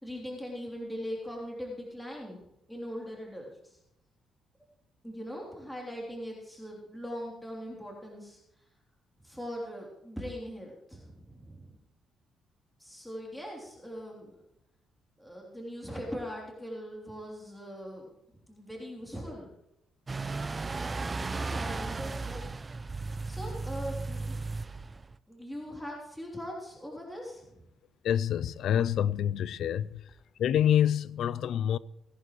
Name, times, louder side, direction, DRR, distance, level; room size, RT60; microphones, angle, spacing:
voice 1, 0.0-2.4 2.7-3.8 5.0-8.4 9.2-11.7 12.8-14.4 15.2-18.1 18.5-19.5 21.3-22.5 23.2-24.4 25.3-27.6, equal, 5° left, 3.2 m, -40 dB
sound 1, 20.1-25.2, right 3 dB, 25° right, 0.5 m, -35 dB
voice 2, 28.0-30.0 30.4-31.8, left 10 dB, 70° left, 0.4 m, -27 dB
18.5 x 11.0 x 3.1 m
cardioid pair, 90°, 0 cm